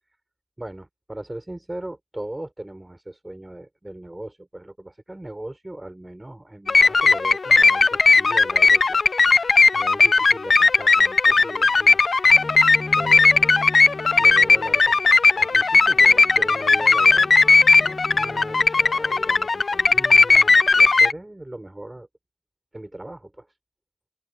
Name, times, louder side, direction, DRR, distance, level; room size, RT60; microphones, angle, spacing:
voice 1, 0.6-9.1 9.7-12.5 13.0-13.7 14.2-22.1 22.7-23.5, right 1 dB, 25° right, 5.4 m, -38 dB
sound 1, 6.7-21.1, left 4 dB, 85° left, 0.5 m, -17 dB
Bowed string instrument, 12.3-19.4, left 2 dB, 35° left, 5.7 m, -39 dB
open air
wide cardioid pair, 80°, 0 cm